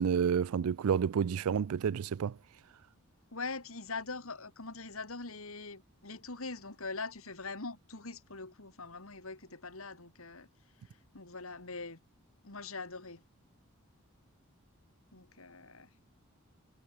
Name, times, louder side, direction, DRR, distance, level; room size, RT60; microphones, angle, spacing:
voice 1, 0.0-2.3, right 7 dB, 85° right, 0.4 m, -29 dB
voice 2, 3.3-10.5 11.1-12.0 12.4-13.2 15.1-15.9, left 3 dB, 75° left, 3.1 m, -42 dB
head